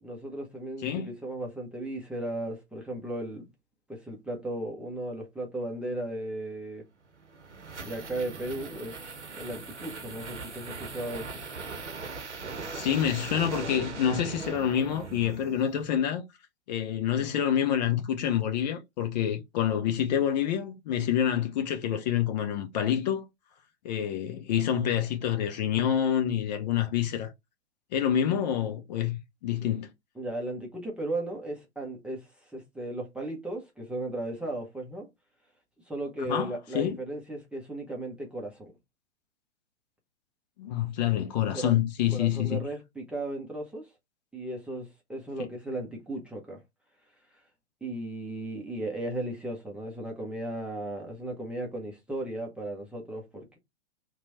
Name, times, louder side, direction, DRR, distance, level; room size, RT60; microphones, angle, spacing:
voice 1, 0.0-3.5 3.9-6.8 7.8-9.0 9.4-11.4 29.6-29.8 30.2-35.1 35.9-38.7 41.5-41.7 42.1-43.9 44.3-46.6 47.8-53.6, right 1 dB, 5° right, 0.6 m, -36 dB
voice 2, 0.8-1.1 12.6-16.2 16.7-23.3 23.8-27.3 27.9-29.9 36.2-37.0 40.6-42.6, left 9 dB, 40° left, 0.6 m, -27 dB
sound 1, 7.0-15.9, right 4 dB, 85° right, 0.9 m, -40 dB
2.9 x 2.3 x 4.0 m
figure-of-eight pair, 110°, 34 cm